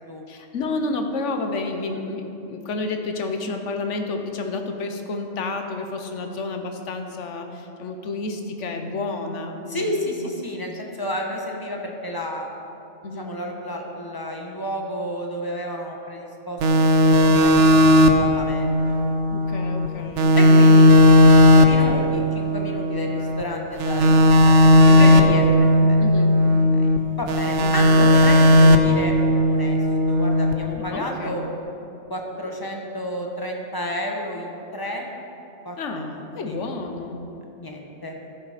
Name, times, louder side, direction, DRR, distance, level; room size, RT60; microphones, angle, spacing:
voice 1, 0.3-10.1 13.0-13.3 19.3-20.6 24.9-25.2 26.0-26.4 27.6-27.9 30.7-31.5 35.8-37.2, left 3 dB, 75° left, 5 dB, 1.2 m, -30 dB
voice 2, 9.7-12.5 13.1-16.6 17.0-18.9 20.3-20.8 21.3-26.3 26.7-29.1 29.5-29.8 30.1-31.4 32.1-35.1 35.6-36.6 37.6-38.2, equal, 20° left, 1 dB, 1.0 m, -31 dB
sound 1, 16.6-19.9 20.2-23.4 23.8-27.0 27.3-30.5, left 1 dB, 75° right, 1.0 m, -15 dB
12.5 x 7.3 x 5.0 m, 2.9 s
omnidirectional pair, 1.3 m